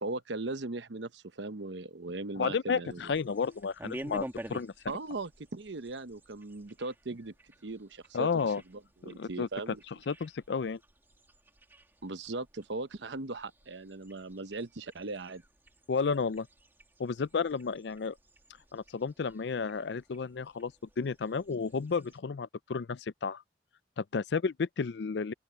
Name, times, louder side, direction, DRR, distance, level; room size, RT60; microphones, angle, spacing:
voice 1, 0.0-3.0 4.9-7.3 7.6-8.3 8.7-9.8 12.0-15.4, right 3 dB, 80° right, 0.9 m, -38 dB
voice 2, 2.4-4.7 8.1-8.6 9.0-9.5 10.1-10.8 15.9-16.5 17.0-18.2 18.7-20.7 21.0-23.4 24.0-25.3, left 5 dB, 70° left, 0.5 m, -32 dB
sound 1, 2.9-22.2, right 1 dB, 10° right, 1.8 m, -51 dB
open air
head